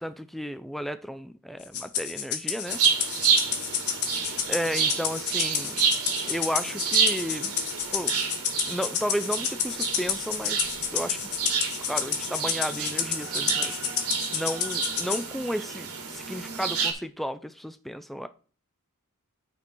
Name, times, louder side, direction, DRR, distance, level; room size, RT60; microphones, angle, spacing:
voice 1, 0.0-2.8 4.5-5.9 6.3-7.5 7.9-8.2 8.7-10.6 10.9-11.3 11.8-13.8 14.3-18.3, equal, ahead, 0.3 m, -33 dB
Rattle (instrument), 1.7-15.2, left 8 dB, 80° left, 1.4 m, -30 dB
sound 1, 2.7-16.9, right 6 dB, 80° right, 1.9 m, -29 dB
9.5 x 5.3 x 4.5 m
head